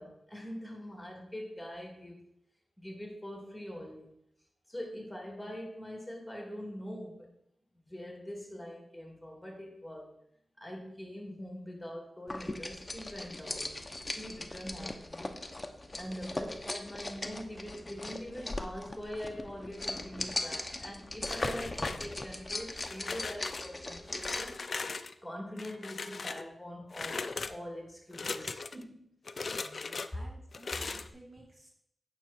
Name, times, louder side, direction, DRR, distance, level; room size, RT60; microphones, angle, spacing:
voice 1, 0.0-2.2 2.8-4.2 4.7-7.3 7.9-10.1 10.6-15.4 15.9-24.7 25.2-29.1, equal, 10° left, 0 dB, 2.9 m, -43 dB
sound 1, 12.3-24.6, left 2 dB, 25° left, 0.9 m, -39 dB
sound 2, 21.2-22.4 22.8-23.7 24.2-25.1 25.6-26.5 26.9-27.6 28.1-28.8 29.3-30.1 30.5-31.1, left 4 dB, 55° left, 0.5 m, -38 dB
voice 2, 29.5-31.7, right 1 dB, 35° right, -2 dB, 2.1 m, -55 dB
9.1 x 6.1 x 4.5 m, 0.73 s
cardioid pair, 60°, 0 cm